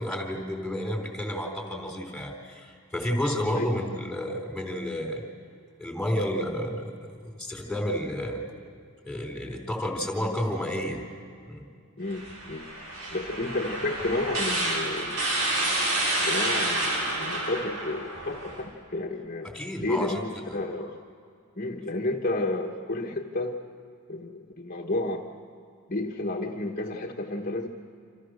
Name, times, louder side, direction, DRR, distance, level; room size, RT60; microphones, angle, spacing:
voice 1, 0.0-5.3 5.8-8.4 9.0-11.0 11.5-11.7 19.5-20.2, equal, ahead, 2 dB, 4.0 m, -31 dB
voice 2, 12.0-12.7 13.1-15.3 16.2-21.0 21.6-23.5 24.1-25.3 25.9-27.7, left 2 dB, 40° left, 2 dB, 1.5 m, -31 dB
sound 1, 12.1-18.6, right 1 dB, 80° right, 7.7 m, -29 dB
28.5 x 27.5 x 6.6 m, 2.3 s
head